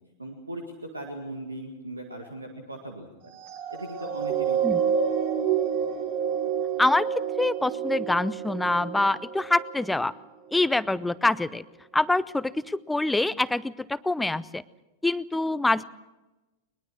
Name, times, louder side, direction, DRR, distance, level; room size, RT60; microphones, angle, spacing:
voice 1, 0.2-3.3 3.7-5.1, right 1 dB, 80° right, 4 dB, 2.0 m, -39 dB
sound 1, 3.4-10.0 10.6-10.8, right 8 dB, 50° right, 4.1 m, -28 dB
voice 2, 7.4-10.1 10.5-11.6 11.9-14.6 15.0-15.8, left 2 dB, 5° left, 18 dB, 0.6 m, -25 dB
21.5 x 21.5 x 6.3 m, 1.1 s
figure-of-eight pair, 90°, 0 cm